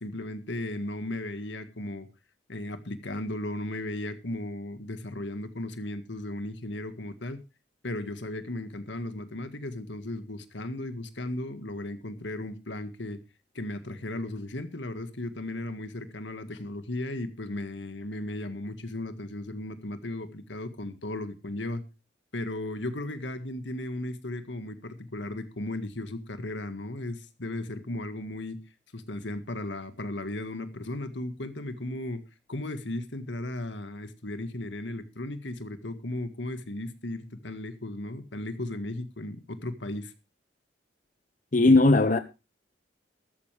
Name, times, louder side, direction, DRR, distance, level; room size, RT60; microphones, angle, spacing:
voice 1, 0.0-2.1 2.5-7.4 7.8-13.2 13.6-21.8 22.3-28.6 28.9-32.2 32.5-40.1, left 1 dB, 85° left, 1.8 m, -36 dB
voice 2, 41.5-42.2, left 2 dB, 45° left, 0.9 m, -18 dB
13.5 x 13.5 x 3.4 m
head